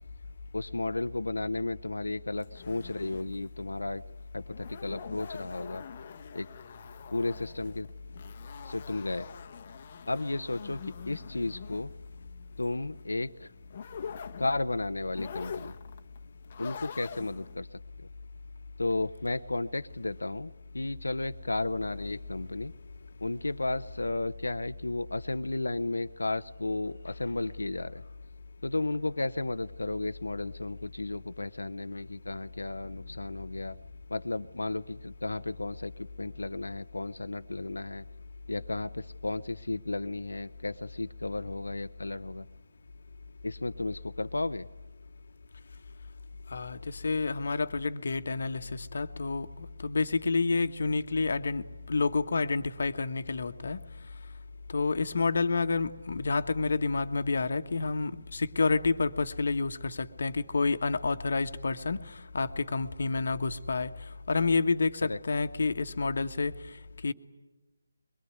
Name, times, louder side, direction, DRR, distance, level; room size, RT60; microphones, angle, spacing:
voice 1, 0.5-4.0 4.3-5.8 6.3-6.5 7.1-7.9 8.6-9.3 10.1-10.8 11.1-11.9 12.6-13.5 14.4-15.7 16.6-17.7 18.0-18.1 18.8-22.7 23.2-28.0 28.6-33.8 34.1-38.0 38.5-42.5 43.4-44.7 65.0-65.2, left 2 dB, 75° left, 12 dB, 0.8 m, -33 dB
sound 1, 2.4-17.6, left 7 dB, 35° left, 1.2 m, -45 dB
voice 2, 46.5-53.8 54.7-63.9 64.3-67.1, left 4 dB, 55° left, 10 dB, 1.3 m, -29 dB
23.0 x 22.0 x 9.5 m, 1.1 s
figure-of-eight pair, 150°, 0 cm